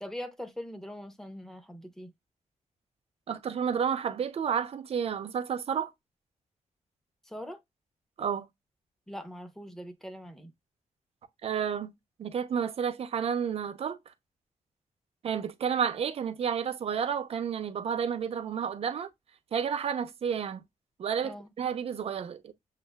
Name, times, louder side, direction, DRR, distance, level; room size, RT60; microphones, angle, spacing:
voice 1, 0.0-2.1 7.2-7.6 9.1-10.5 21.2-21.5, equal, 5° left, 0.7 m, -42 dB
voice 2, 3.3-5.9 8.2-8.5 11.4-11.9 12.2-14.0 15.2-19.1 19.5-20.6 21.0-22.5, right 7 dB, 50° right, 0.6 m, -31 dB
7.3 x 2.5 x 2.2 m
wide cardioid pair, 175°, 13 cm